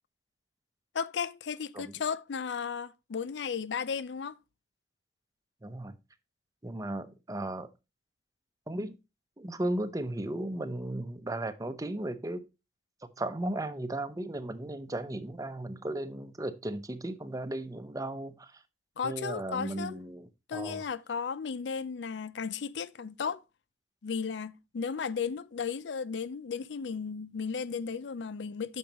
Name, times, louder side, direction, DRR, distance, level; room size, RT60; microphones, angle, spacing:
voice 1, 0.9-4.4 19.0-20.0 20.5-23.4 24.0-28.8, left 6 dB, 90° left, 0.5 m, -35 dB
voice 2, 5.6-6.0 6.6-7.7 8.7-9.0 9.4-12.4 13.2-18.6 19.0-20.8, right 1 dB, 20° right, 0.8 m, -35 dB
8.8 x 6.3 x 2.9 m
head